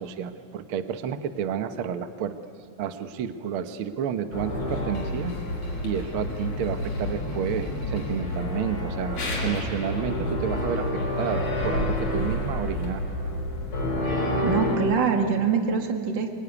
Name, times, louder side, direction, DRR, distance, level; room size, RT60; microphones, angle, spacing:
voice 1, 0.0-2.3 2.8-5.3 5.8-13.0, right 8 dB, 60° right, 9 dB, 1.4 m, -30 dB
sound 1, 4.3-14.8, left 1 dB, 55° left, 5.7 m, -29 dB
voice 2, 14.4-16.3, right 6 dB, 40° right, 4 dB, 2.4 m, -24 dB
26.5 x 22.0 x 9.7 m, 2.2 s
omnidirectional pair, 3.5 m